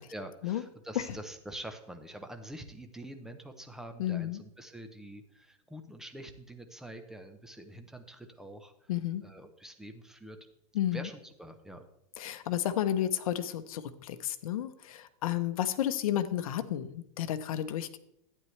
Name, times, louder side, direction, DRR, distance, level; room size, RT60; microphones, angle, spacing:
voice 1, 0.1-8.9 9.2-10.4 10.9-11.8, right 1 dB, 5° right, 6 dB, 0.7 m, -45 dB
voice 2, 4.0-4.4 8.9-9.2 10.7-11.1 12.2-18.0, left 11 dB, 70° left, 11 dB, 0.9 m, -32 dB
12.0 x 9.4 x 3.2 m, 0.78 s
supercardioid pair, 160°, 19 cm